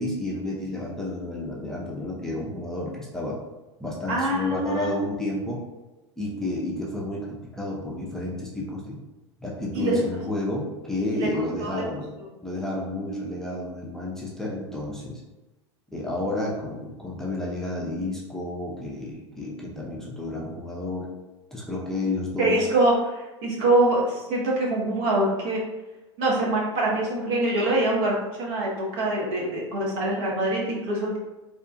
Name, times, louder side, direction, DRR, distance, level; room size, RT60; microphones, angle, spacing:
voice 1, 0.0-3.4 3.8-5.7 6.2-9.0 9.4-12.1 12.4-15.2 15.9-21.1 21.5-22.6, left 2 dB, 5° left, -5 dB, 0.6 m, -31 dB
voice 2, 4.1-4.9 9.7-10.0 11.1-11.3 11.6-11.8 22.4-25.6 26.2-31.2, right 1 dB, 60° right, -3 dB, 1.0 m, -24 dB
2.8 x 2.3 x 2.5 m, 1.1 s
hypercardioid pair, 90°, 15 cm